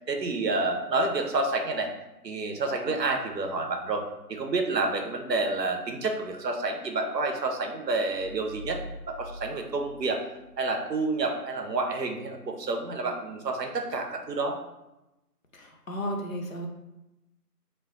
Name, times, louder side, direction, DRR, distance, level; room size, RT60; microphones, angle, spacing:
voice 1, 0.1-1.9 2.2-4.0 4.3-8.8 9.1-10.2 10.6-14.6, right 3 dB, 85° right, 3 dB, 0.7 m, -29 dB
sound 1, 8.1-10.8, left 1 dB, 40° right, 0.6 m, -44 dB
voice 2, 15.5-16.7, equal, 55° left, 1 dB, 0.6 m, -34 dB
2.2 x 2.2 x 3.5 m, 0.96 s
figure-of-eight pair, 155°, 48 cm